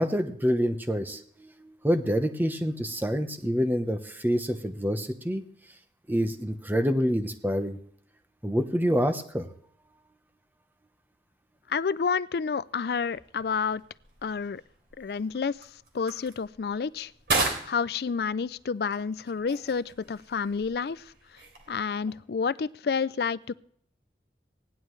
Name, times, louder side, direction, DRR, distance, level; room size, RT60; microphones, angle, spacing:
voice 1, 0.0-5.4 6.1-7.8 8.4-9.5, equal, 10° right, 8 dB, 0.9 m, -27 dB
voice 2, 11.7-13.8 14.2-14.6 15.0-15.6 15.9-17.1 17.6-21.0 21.7-23.5, left 5 dB, 60° left, 18 dB, 0.4 m, -29 dB
sound 1, 13.0-22.1, right 3 dB, 70° right, 3.4 m, -37 dB
17.5 x 11.0 x 3.2 m, 0.63 s
head